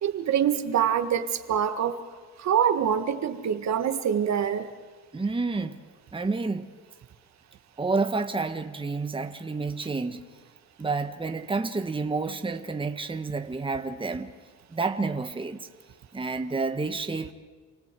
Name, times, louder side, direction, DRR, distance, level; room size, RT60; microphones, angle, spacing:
voice 1, 0.0-1.9 2.4-4.7, right 8 dB, 60° right, 1.6 m, -25 dB
voice 2, 5.1-5.8 6.1-6.7 7.8-10.3 10.8-14.3 14.7-15.6 16.1-17.3, right 3 dB, 15° right, 1.4 m, -29 dB
28.5 x 18.5 x 8.3 m
cardioid pair, 85°, 31 cm